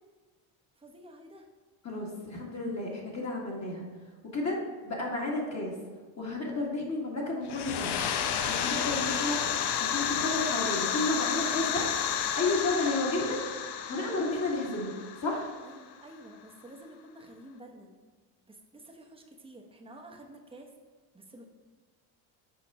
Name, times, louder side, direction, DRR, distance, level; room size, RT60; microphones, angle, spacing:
voice 1, 0.8-1.5 15.6-17.9 18.5-20.7 21.1-21.4, right 1 dB, 10° right, 2 dB, 1.0 m, -50 dB
voice 2, 1.8-3.9 4.3-4.6 4.8-5.7 6.2-8.0 8.5-9.4 9.9-11.9 12.4-13.4 13.9-14.9 15.2-15.5, left 2 dB, 35° left, -3 dB, 1.8 m, -31 dB
sound 1, 7.4-16.0, left 8 dB, 55° left, 0.7 m, -31 dB
6.3 x 4.2 x 4.8 m, 1.4 s
supercardioid pair, 85°, 47 cm